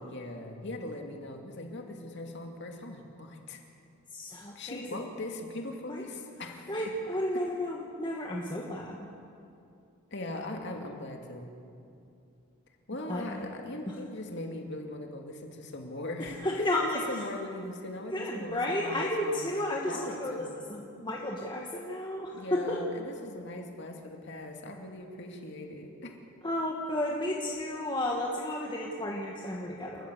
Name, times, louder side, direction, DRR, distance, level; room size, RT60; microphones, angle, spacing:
voice 1, 0.0-3.6 4.6-6.7 10.1-11.5 12.9-16.7 17.1-19.5 19.9-20.6 22.3-26.1, left 1 dB, 55° left, 3 dB, 2.4 m, -40 dB
voice 2, 4.1-5.0 5.9-6.0 6.7-9.1 13.1-13.5 13.9-14.0 16.2-17.3 18.1-22.8 26.4-30.1, left 1 dB, 20° left, -2 dB, 1.5 m, -33 dB
28.0 x 14.5 x 6.9 m, 2.6 s
head